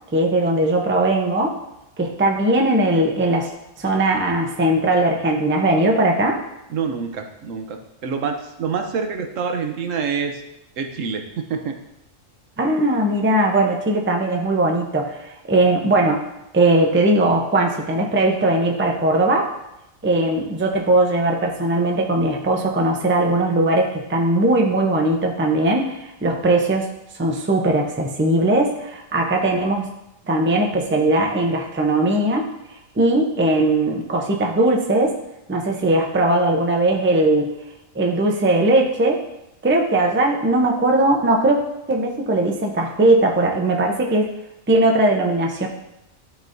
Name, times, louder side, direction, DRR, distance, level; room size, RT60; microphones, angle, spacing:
voice 1, 0.1-1.6 2.0-3.5 3.8-6.4 12.6-16.2 16.5-19.5 20.0-26.9 27.2-29.9 30.3-32.5 33.0-35.1 35.5-37.5 37.9-39.2 39.6-41.6 41.9-44.3 44.7-45.7, right 2 dB, 15° right, 1 dB, 0.5 m, -19 dB
voice 2, 6.7-10.4 10.8-11.8, right 6 dB, 80° right, 5 dB, 1.1 m, -26 dB
12.0 x 4.1 x 2.6 m, 0.88 s
omnidirectional pair, 1.3 m